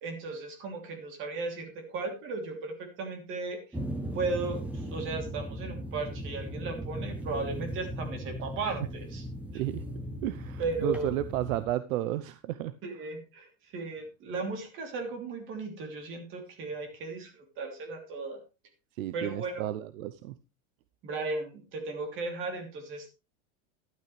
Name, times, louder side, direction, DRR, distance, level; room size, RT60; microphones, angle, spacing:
voice 1, 0.0-3.6 4.1-9.2 9.5-9.6 10.6-11.1 12.8-18.4 19.1-19.7 21.0-23.1, right 3 dB, 30° right, 4 dB, 3.1 m, -36 dB
sound 1, 3.7-11.6, equal, 5° right, 0.6 m, -38 dB
voice 2, 9.5-9.9 10.2-12.7 18.9-20.4, right 13 dB, 75° right, 13 dB, 0.8 m, -33 dB
12.5 x 12.0 x 3.3 m, 0.29 s
supercardioid pair, 175°, 41 cm